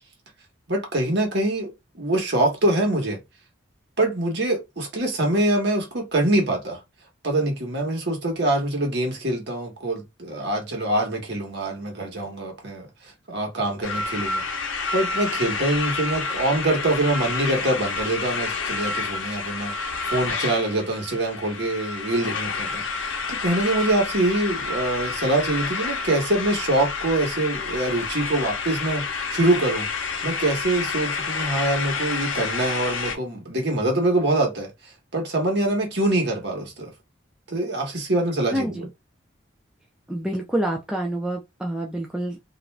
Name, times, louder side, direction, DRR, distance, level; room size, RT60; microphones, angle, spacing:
voice 1, 0.7-3.2 4.0-6.8 7.2-12.9 13.3-14.7 14.9-29.0 29.3-29.9 30.2-34.7 35.1-36.9 37.5-38.8, right 1 dB, 55° right, 1.1 m, -24 dB
sound 1, 13.8-33.2, left 4 dB, 75° left, 0.6 m, -29 dB
voice 2, 38.5-38.9 40.1-42.5, right 1 dB, 5° right, 0.4 m, -27 dB
2.5 x 2.2 x 3.2 m
head